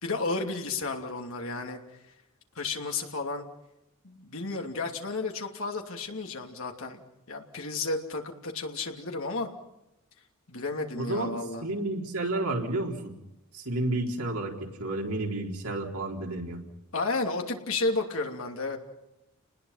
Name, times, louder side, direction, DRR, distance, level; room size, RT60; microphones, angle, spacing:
voice 1, 0.0-1.8 2.6-3.5 4.0-7.0 7.3-9.5 10.5-11.6 16.9-18.8, left 3 dB, 70° left, 3 dB, 2.8 m, -32 dB
voice 2, 11.0-11.3 11.6-13.1 13.5-16.6, right 2 dB, 90° right, 0 dB, 4.2 m, -31 dB
30.0 x 20.0 x 5.8 m, 0.91 s
head